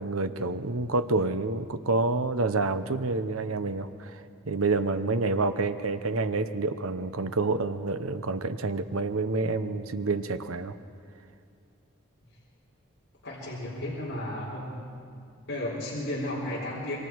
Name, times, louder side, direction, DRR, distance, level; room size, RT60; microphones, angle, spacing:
voice 1, 0.0-4.2 4.5-10.7, right 3 dB, 80° right, 10 dB, 0.9 m, -28 dB
voice 2, 13.2-14.8 15.5-17.0, left 1 dB, 60° left, -6 dB, 4.1 m, -33 dB
26.0 x 23.0 x 4.7 m, 2.4 s
head